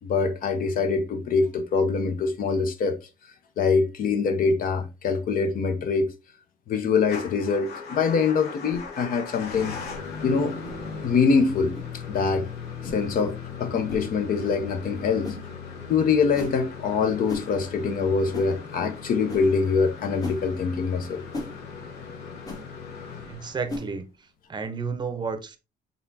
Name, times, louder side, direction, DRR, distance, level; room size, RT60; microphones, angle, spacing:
voice 1, 0.0-3.0 3.6-6.1 6.7-9.8 10.2-10.6 11.0-11.7 12.1-12.5 12.8-15.4 15.9-21.2, left 5 dB, 55° left, 0.8 m, -24 dB
Motor vehicle (road) / Engine starting / Idling, 7.0-24.0, left 5 dB, 75° left, 1.1 m, -39 dB
sound 1, 8.7-8.9 9.8-10.0 10.6-10.8 11.7-11.9 12.8-13.0 13.9-14.0 15.2-15.4 16.3-16.6 17.3-17.5 18.3-18.5 19.3-19.5 20.2-20.4 21.3-21.5 22.4-22.6 23.7-23.9, left 2 dB, 20° left, 1.1 m, -35 dB
voice 2, 23.3-24.0 24.5-25.6, right 5 dB, 25° right, 0.7 m, -31 dB
4.1 x 3.6 x 2.7 m
cardioid pair, 110°, 17 cm